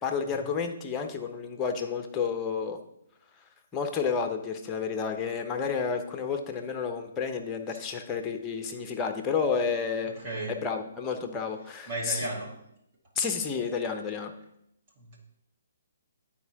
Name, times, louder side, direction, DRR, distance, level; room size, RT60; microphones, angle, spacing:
voice 1, 0.0-2.8 3.7-10.1 10.5-12.3 13.2-14.3, left 6 dB, 15° left, 5 dB, 0.8 m, -31 dB
voice 2, 10.0-10.6 11.9-12.6 15.0-15.2, right 2 dB, 35° right, -4 dB, 2.1 m, -35 dB
11.0 x 4.5 x 2.9 m, 0.78 s
figure-of-eight pair, 130°, 0 cm